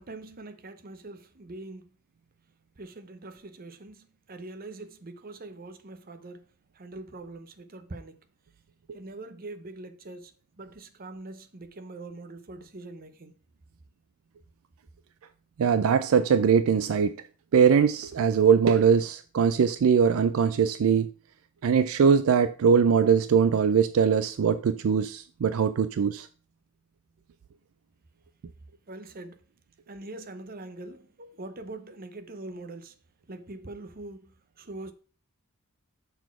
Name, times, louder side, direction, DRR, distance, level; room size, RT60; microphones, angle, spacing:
voice 1, 0.0-1.9 2.8-6.4 6.7-8.2 8.9-10.3 10.6-13.3 28.9-29.4 29.9-33.0 33.3-34.3 34.6-34.9, right 2 dB, 45° right, 0.8 m, -43 dB
voice 2, 15.6-17.2 17.5-21.1 21.6-26.3, right 6 dB, 70° right, 0.4 m, -21 dB
6.8 x 4.1 x 5.8 m
head